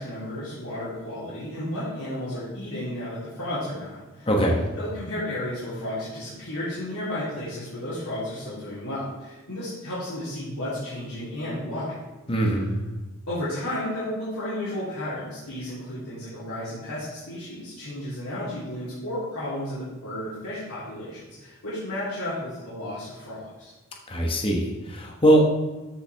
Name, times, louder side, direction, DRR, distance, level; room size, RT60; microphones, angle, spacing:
voice 1, 0.0-4.3 4.7-12.0 13.3-23.7, left 1 dB, 90° left, -11 dB, 3.2 m, -33 dB
voice 2, 4.3-4.6 12.3-12.7 24.1-25.4, right 1 dB, 25° left, 0 dB, 1.1 m, -21 dB
13.0 x 5.8 x 3.4 m, 1.2 s
head